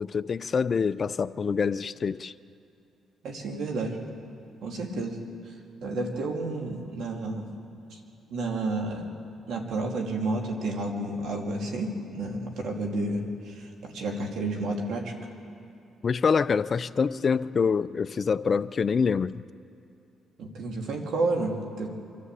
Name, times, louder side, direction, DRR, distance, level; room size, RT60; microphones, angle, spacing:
voice 1, 0.0-2.3 16.0-19.4, left 5 dB, 45° left, 0.5 m, -26 dB
voice 2, 3.2-4.0 4.6-5.2 5.8-7.4 7.9-8.0 8.3-9.1 9.5-15.1 20.4-21.9, right 2 dB, 75° right, 2.7 m, -31 dB
25.0 x 13.0 x 8.3 m
cardioid pair, 90°, 0 cm